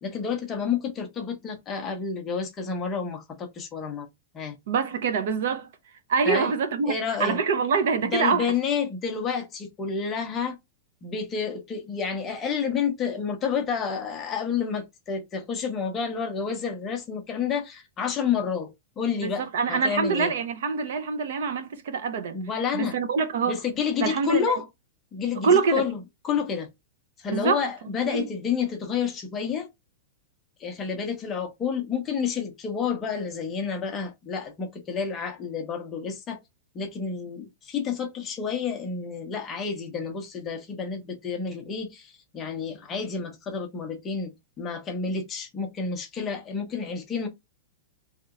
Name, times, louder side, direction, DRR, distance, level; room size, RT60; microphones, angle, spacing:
voice 1, 0.0-4.1 4.3-4.6 6.3-6.5 6.9-7.4 8.1-10.6 11.0-20.3 22.3-23.0 23.4-24.7 25.1-26.7 27.2-29.7 30.6-36.4 36.7-47.3, left 6 dB, 15° left, 0.7 m, -29 dB
voice 2, 4.7-5.7 6.1-6.9 7.2-8.5 19.2-22.4 22.7-23.6 24.0-24.6 25.4-25.8 27.3-27.6 28.1-28.3, right 5 dB, 55° right, 0.7 m, -25 dB
3.2 x 2.9 x 3.6 m
supercardioid pair, 180°, 0 cm